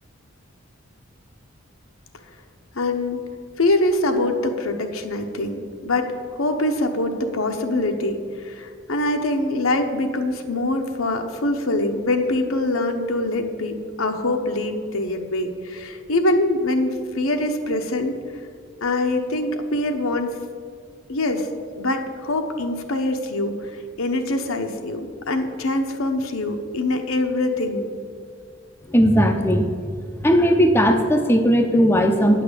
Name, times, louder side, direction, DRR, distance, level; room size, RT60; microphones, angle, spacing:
voice 1, 2.7-3.2 3.6-18.1 18.8-20.4 21.1-21.5 21.8-27.9, left 2 dB, 80° left, 5 dB, 1.0 m, -24 dB
voice 2, 28.9-29.7 30.2-32.4, equal, 10° left, 4 dB, 0.6 m, -17 dB
9.3 x 6.0 x 8.2 m, 2.1 s
head